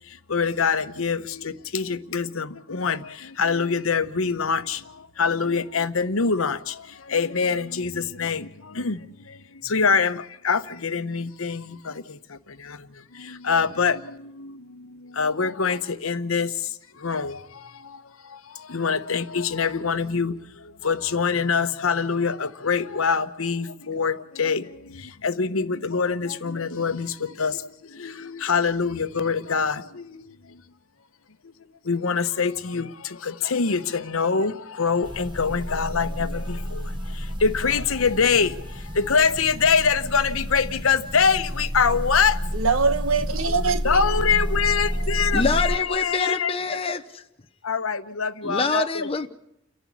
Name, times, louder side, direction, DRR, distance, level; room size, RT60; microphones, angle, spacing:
voice 1, 0.1-30.6 31.4-31.5 31.8-42.4 43.8-46.5 47.6-49.3, left 5 dB, 85° left, 1.0 m, -25 dB
sound 1, 35.0-45.8, equal, 25° right, 1.3 m, -30 dB
voice 2, 42.5-44.3 44.7-45.3, right 4 dB, 80° right, 1.3 m, -25 dB
voice 3, 45.3-47.2 48.4-49.3, left 3 dB, 30° left, 0.8 m, -25 dB
29.5 x 11.5 x 8.5 m
head